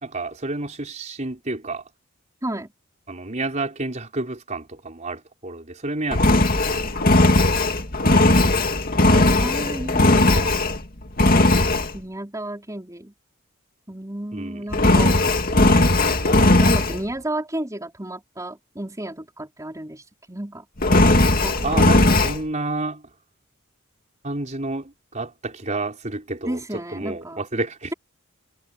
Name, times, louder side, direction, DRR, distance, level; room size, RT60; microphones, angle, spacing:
voice 1, 0.0-1.8 3.1-6.9 14.3-14.6 21.6-23.0 24.2-26.6 26.9-27.9, right 2 dB, 35° right, 4.7 m, -30 dB
voice 2, 2.4-2.7 6.9-7.0 9.1-10.5 11.9-13.1 13.9-15.2 16.6-20.7 21.4-21.7 26.4-27.4, right 1 dB, 15° right, 4.5 m, -32 dB
Engine, 6.1-10.8 11.2-11.9 14.7-17.0 20.8-22.4, left 2 dB, 45° left, 2.5 m, -17 dB
head